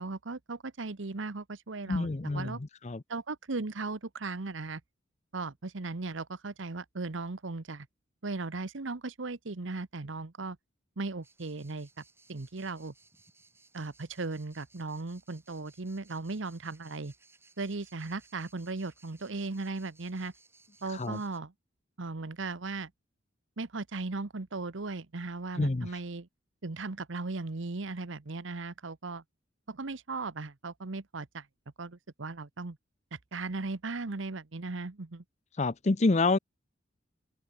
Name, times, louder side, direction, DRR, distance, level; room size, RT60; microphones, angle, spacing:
voice 1, 0.0-2.6 3.1-4.8 5.3-7.9 8.2-10.6 11.0-12.0 12.3-12.9 13.7-17.1 17.6-20.3 20.8-21.5 22.0-22.9 23.6-26.3 26.6-29.2 29.7-31.5 31.8-32.8 33.1-35.2, right 3 dB, 75° right, 1.0 m, -37 dB
voice 2, 1.9-3.0 20.9-21.2 25.6-25.9 35.6-36.4, left 3 dB, 35° left, 0.6 m, -28 dB
sound 1, 11.2-21.4, right 3 dB, 15° right, 5.6 m, -62 dB
head